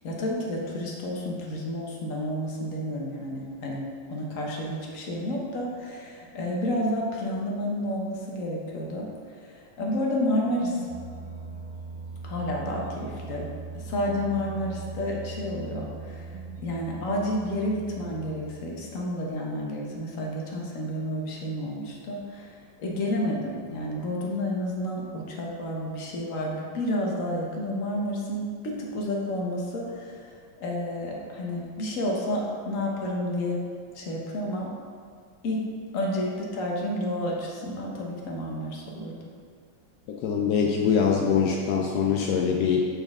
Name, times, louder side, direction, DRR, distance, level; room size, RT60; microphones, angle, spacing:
voice 1, 0.0-9.1 9.4-10.9 12.2-13.5 13.7-16.3 16.6-22.5 22.8-33.6 33.9-34.7 35.4-35.6 35.9-39.2, left 1 dB, 50° left, -2 dB, 1.1 m, -30 dB
sound 1, 10.4-19.2, right 4 dB, 80° right, 1.5 m, -40 dB
voice 2, 40.1-42.9, left 6 dB, 80° left, 0 dB, 0.9 m, -23 dB
8.7 x 4.1 x 3.6 m, 2.1 s
omnidirectional pair, 2.2 m